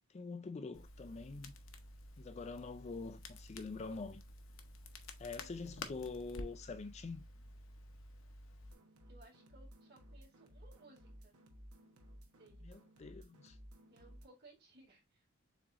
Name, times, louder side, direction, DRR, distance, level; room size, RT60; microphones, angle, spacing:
voice 1, 0.1-1.5 2.2-4.2 5.2-7.2 12.6-13.6, left 4 dB, 30° left, 0.3 m, -45 dB
Crackle, 0.7-8.7, left 2 dB, 60° left, 0.8 m, -51 dB
voice 2, 5.4-5.7 9.1-11.3 12.4-12.7 13.9-15.3, right 2 dB, 45° right, 2.2 m, -63 dB
sound 1, 8.6-14.3, equal, 85° right, 1.1 m, -57 dB
7.3 x 3.0 x 2.4 m
head